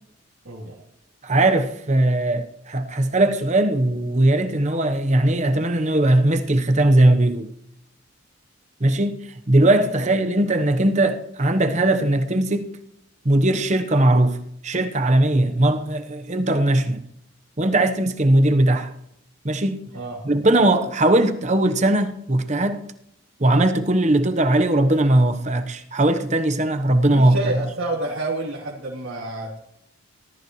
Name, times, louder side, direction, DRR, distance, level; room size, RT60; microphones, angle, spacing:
voice 1, 0.4-0.8 19.9-20.2 27.1-29.6, right 2 dB, 75° right, 3.0 m, -29 dB
voice 2, 1.2-7.5 8.8-12.7 13.2-14.4 14.6-17.0 17.6-18.9 19.4-19.9 20.2-22.8 23.4-27.5, right 1 dB, 35° right, 0.9 m, -19 dB
18.5 x 13.5 x 3.1 m
head